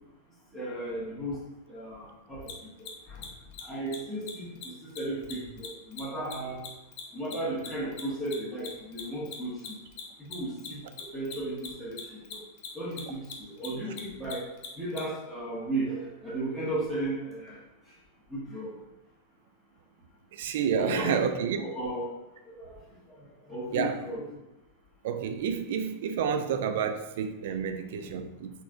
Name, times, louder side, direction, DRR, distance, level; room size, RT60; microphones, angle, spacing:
voice 1, 0.5-3.3 3.6-6.7 7.1-9.8 10.2-12.4 12.7-18.0 18.3-18.8 20.8-21.2 21.5-22.1 22.4-22.8 23.1-24.4 27.5-28.2, right 1 dB, 5° right, 1.5 m, -35 dB
Mechanisms, 2.4-2.5 2.8-2.9 3.2-3.3 3.5-3.6 3.9-4.0 4.2-4.3 4.6-4.7 5.0-7.7 7.9-15.0, left 9 dB, 45° left, 0.6 m, -41 dB
voice 2, 20.3-21.6 23.7-24.0 25.0-28.5, right 7 dB, 55° right, 0.3 m, -29 dB
3.9 x 3.5 x 2.6 m
figure-of-eight pair, 90°, 0 cm